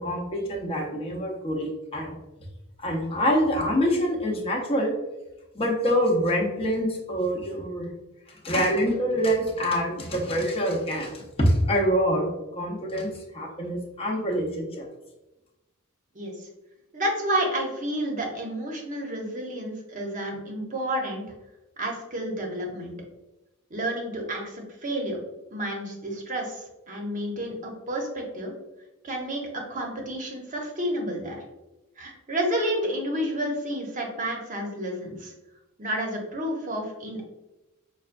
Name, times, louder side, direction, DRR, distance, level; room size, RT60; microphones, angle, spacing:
voice 1, 0.0-2.2 2.8-4.9 5.5-7.9 8.3-14.9, equal, 25° left, -1 dB, 0.7 m, -25 dB
voice 2, 16.1-16.5 16.9-21.2 21.8-23.0 23.7-25.2 25.5-28.5 29.0-31.4 32.0-35.3 35.8-37.3, right 1 dB, 35° right, 1 dB, 0.8 m, -30 dB
5.7 x 2.2 x 2.5 m, 1.0 s
head